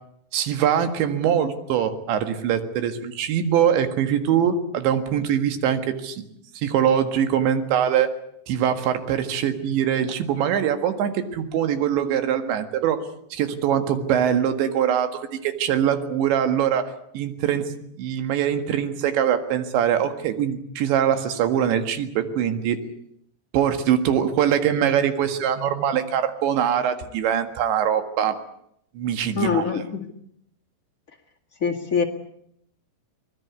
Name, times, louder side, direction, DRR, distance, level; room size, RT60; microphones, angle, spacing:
voice 1, 0.3-6.2 6.6-8.1 8.5-13.0 13.3-17.7 18.0-22.8 23.5-28.4 29.0-29.6, right 9 dB, 90° right, 8 dB, 4.1 m, -23 dB
voice 2, 29.3-30.1 31.6-32.0, left 6 dB, 40° left, 3 dB, 1.2 m, -24 dB
24.0 x 20.5 x 8.3 m, 0.71 s
omnidirectional pair, 5.0 m